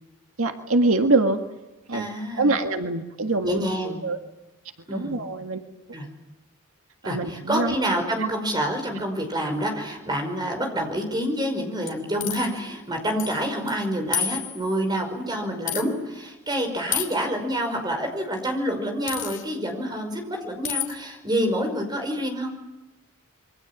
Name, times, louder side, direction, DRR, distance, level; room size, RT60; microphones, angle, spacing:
voice 1, 0.4-1.4 1.9-2.1 2.4-4.2 4.9-5.6 7.0-7.7, right 2 dB, 85° right, 5 dB, 1.8 m, -24 dB
voice 2, 1.9-2.6 3.4-4.0 4.9-5.2 5.9-6.1 7.0-22.5, equal, 20° right, 4 dB, 5.4 m, -27 dB
sound 1, 11.9-12.6 13.2-13.4 13.7-13.8 14.1-14.8 15.7-15.8 16.9-17.2 19.1-19.4 20.6-20.9, left 9 dB, 60° left, 3.1 m, -29 dB
26.5 x 23.5 x 7.5 m, 1.0 s
head